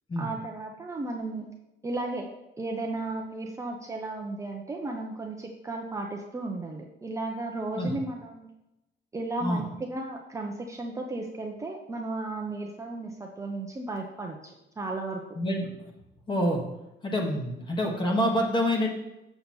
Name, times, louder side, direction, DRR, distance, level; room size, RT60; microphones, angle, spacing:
voice 1, 0.2-1.5 1.8-2.3 2.6-8.5 9.1-15.2, right 2 dB, 15° right, 0 dB, 0.6 m, -34 dB
voice 2, 15.3-15.7 16.3-16.6 17.0-18.9, equal, 25° left, 1 dB, 1.4 m, -26 dB
6.9 x 6.8 x 4.4 m, 0.95 s
cardioid pair, 165°, 19 cm